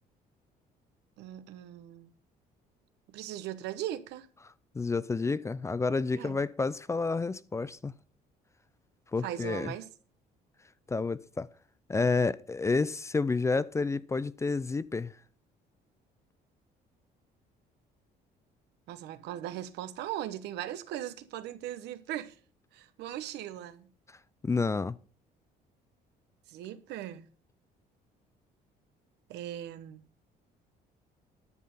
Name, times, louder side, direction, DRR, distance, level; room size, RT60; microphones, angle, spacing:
voice 1, 1.2-2.1 3.1-4.3 6.1-6.4 9.2-9.9 18.9-22.3 22.7-23.9 26.5-27.2 29.3-30.0, right 12 dB, 85° right, 1.0 m, -39 dB
voice 2, 4.7-7.9 9.1-9.7 10.9-11.5 11.9-15.2 24.4-25.0, left 4 dB, 15° left, 0.4 m, -29 dB
11.0 x 6.6 x 5.5 m
cardioid pair, 110°, 17 cm